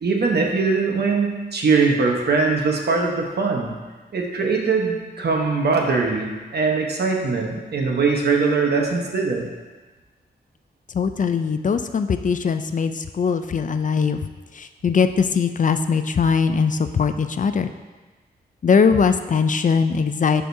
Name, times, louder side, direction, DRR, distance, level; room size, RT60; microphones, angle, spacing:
voice 1, 0.0-3.7 4.1-9.4, right 4 dB, 70° right, 0 dB, 1.1 m, -21 dB
voice 2, 10.9-14.3 14.5-17.7 18.6-20.5, left 5 dB, 50° left, 9 dB, 0.4 m, -20 dB
11.0 x 5.0 x 2.7 m, 1.3 s
wide cardioid pair, 110°, 17 cm